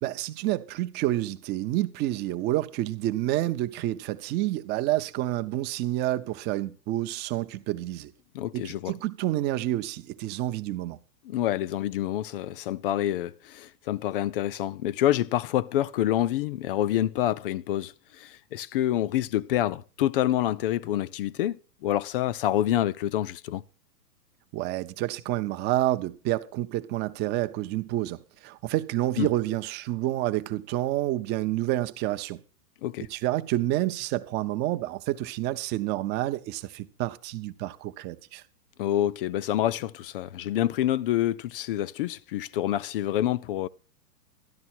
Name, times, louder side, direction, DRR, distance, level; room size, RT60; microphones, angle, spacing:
voice 1, 0.0-8.1 8.5-11.0 24.5-32.4 33.1-38.4, right 15 dB, 20° right, 0.7 m, -29 dB
voice 2, 8.3-8.9 11.2-23.6 29.2-29.3 32.8-33.1 38.8-43.7, left 12 dB, 35° left, 0.5 m, -27 dB
13.0 x 11.0 x 4.5 m
hypercardioid pair, 135°, 48 cm